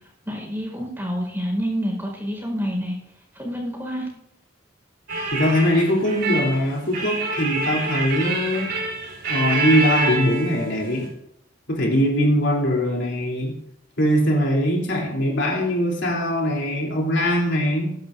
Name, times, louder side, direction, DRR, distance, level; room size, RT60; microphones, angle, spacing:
voice 1, 0.2-2.9 3.3-4.1, equal, 10° right, -1 dB, 4.9 m, -27 dB
sound 1, 5.1-11.1, right 3 dB, 65° right, 4.1 m, -27 dB
voice 2, 5.3-8.7 9.3-11.1 11.7-13.6 14.0-17.9, equal, 65° left, -2 dB, 3.3 m, -21 dB
21.5 x 11.0 x 2.6 m, 0.75 s
head